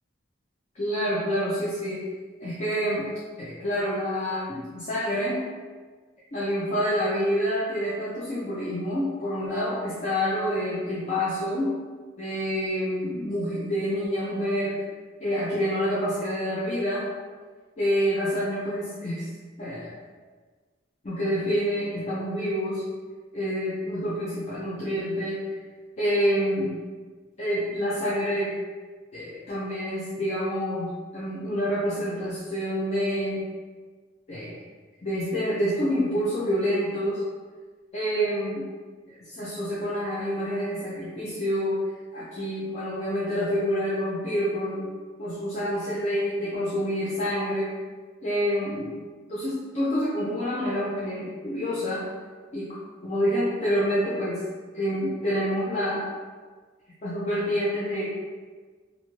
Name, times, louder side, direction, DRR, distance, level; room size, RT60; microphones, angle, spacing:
voice 1, 0.7-2.1 2.4-3.1 3.4-5.4 6.3-11.7 12.2-14.8 15.2-17.1 17.8-19.3 19.6-19.9 21.0-22.8 23.3-25.6 26.0-26.8 27.4-28.5 29.1-33.4 34.3-34.6 35.0-37.2 37.9-38.6 39.1-41.8 42.1-44.9 45.2-47.7 48.2-48.9 49.3-52.1 52.5-52.8 53.0-54.4 54.7-56.1 57.0-58.1, equal, 40° left, -9 dB, 0.5 m, -27 dB
2.5 x 2.5 x 3.0 m, 1.5 s
head